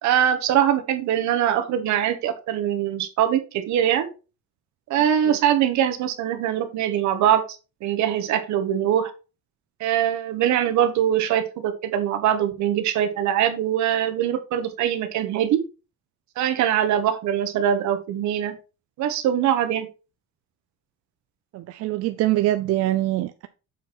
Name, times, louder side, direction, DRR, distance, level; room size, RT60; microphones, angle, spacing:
voice 1, 0.0-4.1 4.9-7.4 7.8-9.1 9.8-15.6 16.4-18.5 19.0-19.9, right 10 dB, 70° right, 1.3 m, -22 dB
voice 2, 21.5-23.5, right 15 dB, 55° right, 0.4 m, -24 dB
7.0 x 4.5 x 4.3 m
cardioid pair, 180°, 30 cm